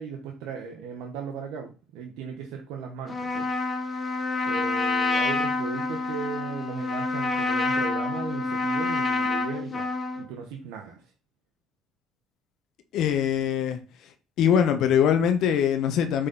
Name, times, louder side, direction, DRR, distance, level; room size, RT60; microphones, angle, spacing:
voice 1, 0.0-3.5 4.4-9.9 10.2-11.0, right 6 dB, 85° right, 1.1 m, -37 dB
Trumpet, 3.1-10.2, left 3 dB, 30° left, 1.6 m, -27 dB
voice 2, 12.9-13.8 14.4-16.3, left 8 dB, 70° left, 1.1 m, -22 dB
7.8 x 4.1 x 4.0 m
cardioid pair, 100°, 0 cm